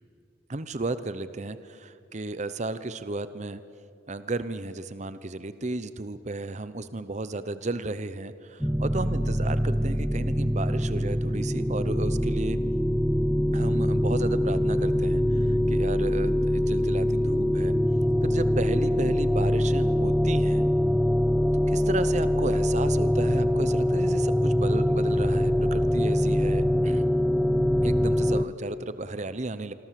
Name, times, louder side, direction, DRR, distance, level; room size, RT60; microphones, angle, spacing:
voice 1, 0.5-3.6 4.1-12.6 13.5-17.8 18.2-20.6 21.7-27.0 27.8-29.7, right 2 dB, 35° right, 13 dB, 0.8 m, -34 dB
sound 1, 8.6-28.5, equal, ahead, 0.5 m, -24 dB
26.5 x 24.5 x 7.6 m, 2.6 s
head